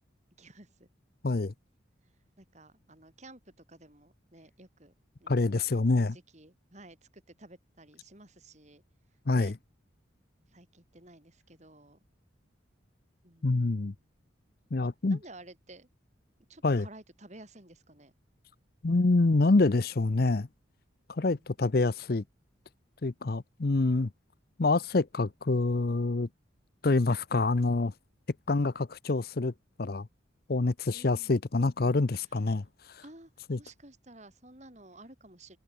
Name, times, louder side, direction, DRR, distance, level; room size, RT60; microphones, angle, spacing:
voice 1, 0.4-0.9 2.4-4.9 5.2-8.8 9.3-9.5 10.5-12.0 13.2-13.9 15.1-15.9 16.5-18.1 21.2-21.5 30.9-31.4 33.0-33.3 33.6-35.6, right 2 dB, 35° right, 4.0 m, -53 dB
voice 2, 1.2-1.5 5.3-6.2 9.3-9.5 13.4-13.9 14.7-15.2 16.6-16.9 18.8-20.5 21.1-22.2 23.0-24.1 24.6-26.3 26.8-27.9 28.5-29.5 29.8-30.1 30.5-33.0 33.5-33.6, left 3 dB, 50° left, 0.6 m, -26 dB
head